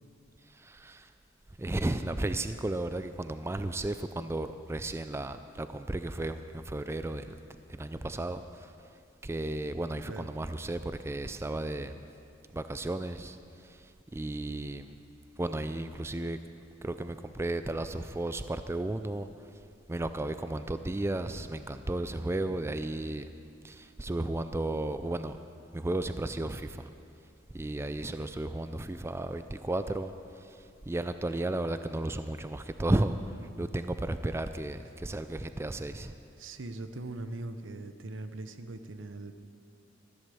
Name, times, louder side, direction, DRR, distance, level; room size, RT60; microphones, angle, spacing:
voice 1, 0.4-1.1 1.6-7.3 7.7-8.9 9.2-12.0 12.5-14.9 15.4-16.4 16.8-19.6 19.9-23.3 23.6-25.4 25.7-26.9 27.5-36.1, right 1 dB, 15° right, 10 dB, 0.4 m, -34 dB
voice 2, 36.4-39.5, right 2 dB, 80° right, 9 dB, 0.8 m, -41 dB
14.0 x 11.5 x 6.9 m, 2.4 s
head